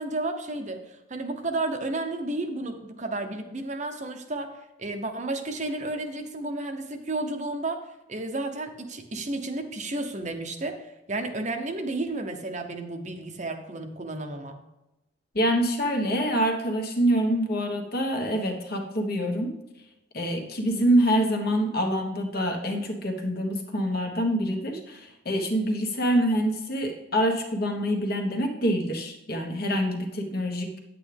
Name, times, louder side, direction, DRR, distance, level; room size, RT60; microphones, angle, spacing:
voice 1, 0.0-14.6, right 2 dB, 40° right, 6 dB, 0.8 m, -32 dB
voice 2, 15.3-19.6 20.1-30.8, equal, 50° left, 2 dB, 1.4 m, -26 dB
9.6 x 8.4 x 3.4 m, 0.93 s
head